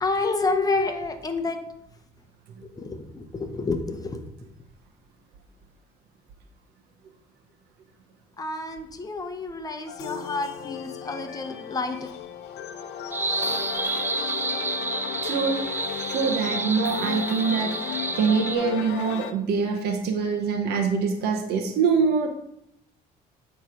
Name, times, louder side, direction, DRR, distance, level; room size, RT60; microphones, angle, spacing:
voice 1, 0.0-1.6 2.6-4.3 8.4-12.1, left 3 dB, 20° left, 6 dB, 0.8 m, -29 dB
sound 1, 9.9-19.3, left 8 dB, 80° left, 0.6 m, -34 dB
sound 2, 13.1-18.6, right 3 dB, 15° right, 0.3 m, -30 dB
voice 2, 15.2-15.6 16.1-22.3, right 5 dB, 75° right, 2 dB, 0.9 m, -24 dB
8.0 x 3.2 x 4.9 m, 0.78 s
cardioid pair, 110°, 17 cm